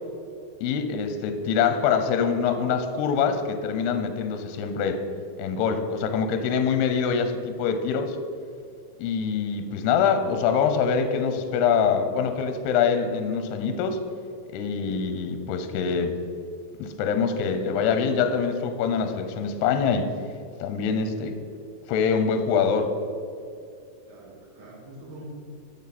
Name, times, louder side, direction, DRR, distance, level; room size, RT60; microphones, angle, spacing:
voice 1, 0.6-5.0 5.4-8.2 9.0-14.0 14.5-16.2 16.8-20.1 20.6-21.4 21.9-22.9, left 6 dB, 75° left, 8 dB, 2.6 m, -24 dB
voice 2, 24.1-25.2, right 2 dB, 70° right, -5 dB, 4.9 m, -46 dB
13.0 x 7.0 x 4.2 m, 2.5 s
omnidirectional pair, 5.1 m